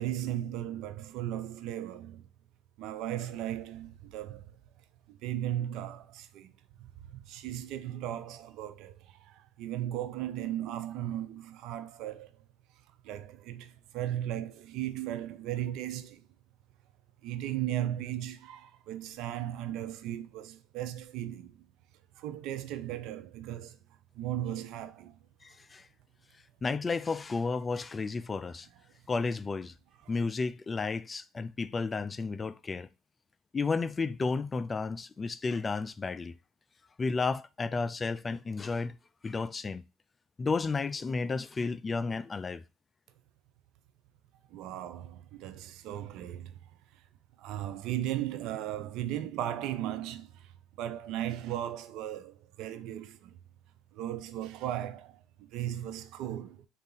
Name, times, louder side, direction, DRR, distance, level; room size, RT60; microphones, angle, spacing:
voice 1, 0.0-2.3 2.8-4.4 5.1-6.5 6.8-12.3 13.0-16.3 17.2-21.6 22.2-23.8 24.1-25.2 30.0-30.1 44.5-46.6 46.9-47.0 47.4-50.5 50.8-53.4 53.9-56.7, right 12 dB, 70° right, 0.5 m, -36 dB
voice 2, 25.4-25.9 26.6-28.7 29.1-29.7 30.1-32.9 33.5-36.3 37.0-39.0 39.2-39.8 40.4-42.6, left 4 dB, 30° left, 0.3 m, -32 dB
3.9 x 2.5 x 3.8 m
hypercardioid pair, 70°, 0 cm